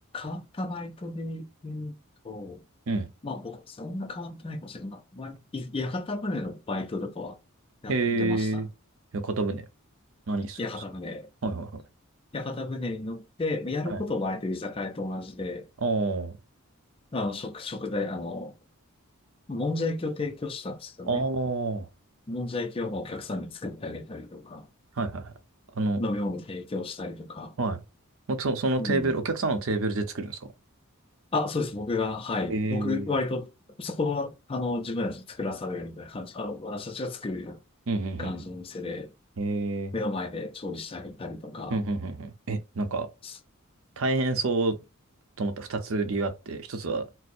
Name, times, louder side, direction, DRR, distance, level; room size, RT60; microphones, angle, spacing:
voice 1, 0.1-2.0 2.2-2.6 3.2-7.4 7.8-8.6 10.6-11.3 12.3-15.7 17.1-18.5 19.5-21.2 22.3-24.7 26.0-27.6 28.8-29.2 31.3-33.5 33.8-37.6 38.2-39.1 39.9-41.8 43.2-43.3, left 2 dB, 25° left, 0.4 m, -32 dB
voice 2, 7.9-8.7 9.1-9.7 10.3-10.6 11.4-11.7 13.9-14.0 15.8-16.4 21.1-21.9 25.0-25.3 25.7-26.0 27.6-27.8 28.3-30.4 32.5-33.1 37.9-38.3 39.4-39.9 41.7-43.1 44.0-44.8 45.4-47.0, right 3 dB, 65° right, 0.7 m, -28 dB
4.2 x 2.0 x 2.5 m
head